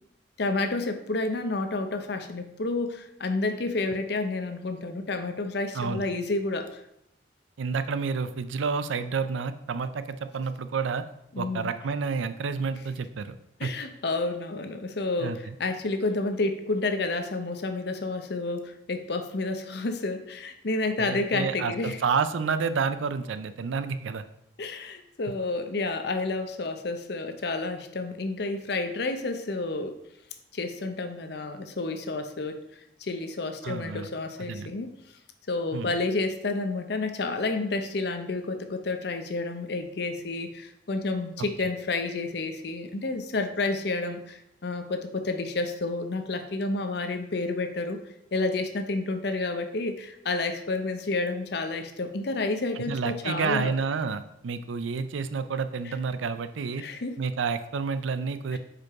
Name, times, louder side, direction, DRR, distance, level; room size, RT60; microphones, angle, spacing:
voice 1, 0.4-6.8 11.3-11.7 13.6-22.0 24.6-30.0 30.5-32.6 33.0-34.9 35.5-48.0 48.3-53.7 56.8-57.2 58.5-58.6, left 3 dB, 60° left, 7 dB, 0.6 m, -30 dB
voice 2, 7.6-11.0 11.4-13.3 13.6-13.7 15.2-15.5 21.0-24.2 33.6-34.1 34.4-34.7 35.7-35.9 41.6-41.7 52.8-56.8 57.2-58.6, right 5 dB, 90° right, 11 dB, 0.4 m, -29 dB
5.0 x 4.6 x 4.7 m, 0.81 s
head